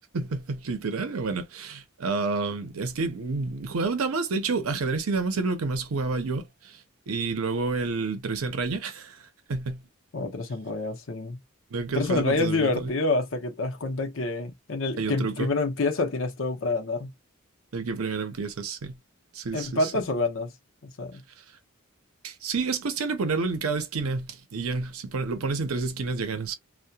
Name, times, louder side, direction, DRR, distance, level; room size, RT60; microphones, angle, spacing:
voice 1, 0.1-9.2 9.5-9.8 11.7-12.9 15.0-15.5 17.7-19.0 19.3-19.9 21.4-21.5 22.2-26.5, right 4 dB, 90° right, 0.6 m, -29 dB
voice 2, 10.1-11.4 11.9-17.1 19.5-20.5 20.8-21.2, left 3 dB, 65° left, 0.7 m, -27 dB
2.7 x 2.2 x 2.2 m
head